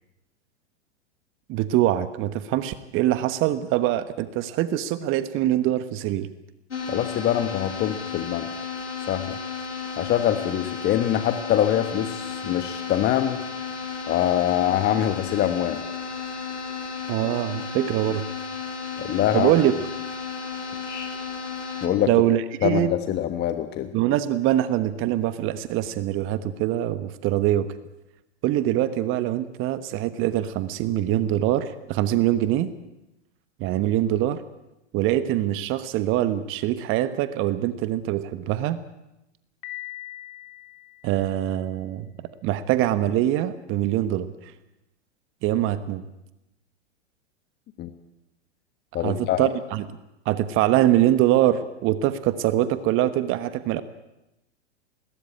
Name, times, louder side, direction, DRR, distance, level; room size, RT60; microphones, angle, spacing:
voice 1, 1.5-6.3 17.1-18.2 19.3-19.7 22.1-22.9 23.9-27.7 28.4-32.7 33.6-34.4 34.9-38.8 41.0-42.1 42.4-44.5 45.4-46.0 49.0-49.8 50.2-53.8, right 13 dB, 35° right, 13 dB, 1.3 m, -23 dB
sound 1, 6.7-21.9, left 5 dB, 90° left, 3.9 m, -33 dB
voice 2, 6.9-8.5 9.1-9.4 10.0-13.4 14.1-15.8 19.0-19.5 21.8-22.1 22.6-23.9 47.8-47.9 48.9-49.5, left 11 dB, 30° left, 9 dB, 1.4 m, -24 dB
Piano, 39.6-41.6, left 17 dB, 45° left, 3.9 m, -41 dB
21.0 x 18.5 x 8.8 m, 0.92 s
hypercardioid pair, 105°, 34 cm